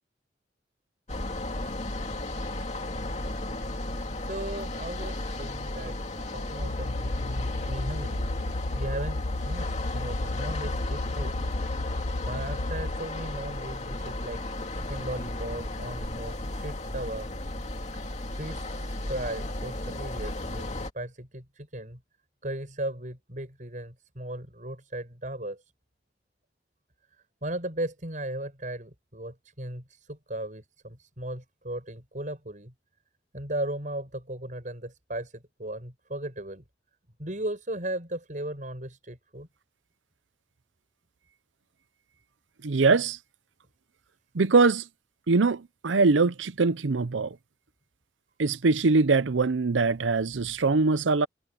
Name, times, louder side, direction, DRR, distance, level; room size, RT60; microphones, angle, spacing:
sound 1, 1.1-20.9, left 1 dB, 35° left, 2.5 m, -34 dB
voice 1, 4.2-8.3 8.7-11.4 11.9-14.4 14.8-17.3 18.3-22.0 22.4-25.7 27.4-32.7 33.3-36.6 37.2-39.5, right 1 dB, 45° right, 7.0 m, -37 dB
sound 2, 6.6-13.0, left 2 dB, 80° left, 1.0 m, -33 dB
voice 2, 42.6-43.2 44.3-44.8 45.3-47.3 48.4-51.3, right 4 dB, 85° right, 0.7 m, -22 dB
head